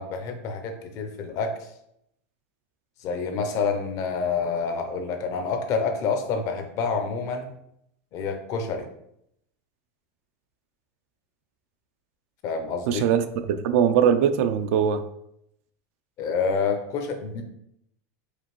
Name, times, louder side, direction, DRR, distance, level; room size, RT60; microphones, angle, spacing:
voice 1, 0.0-1.7 3.0-7.5 8.1-8.9 12.4-13.0 16.2-17.4, left 5 dB, 40° left, 6 dB, 0.6 m, -28 dB
voice 2, 12.9-15.0, right 8 dB, 65° right, 10 dB, 0.4 m, -21 dB
4.9 x 2.5 x 3.1 m, 0.76 s
supercardioid pair, 150°, 8 cm